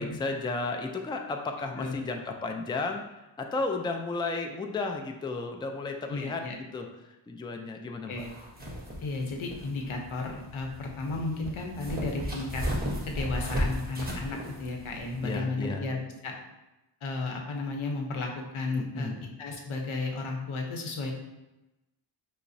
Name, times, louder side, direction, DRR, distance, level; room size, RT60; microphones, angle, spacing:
voice 1, 0.0-3.0 3.4-6.4 6.7-6.9 7.3-8.2 15.2-15.9 18.7-19.4, left 3 dB, 10° left, 4 dB, 0.3 m, -33 dB
voice 2, 6.1-6.5 8.1-8.3 9.0-12.6 13.0-16.3 17.0-19.1 19.4-21.1, left 3 dB, 85° left, 2 dB, 0.7 m, -33 dB
sound 1, 8.2-15.4, equal, 20° right, 1.0 m, -35 dB
5.4 x 2.0 x 2.6 m, 1.0 s
cardioid pair, 55°, 47 cm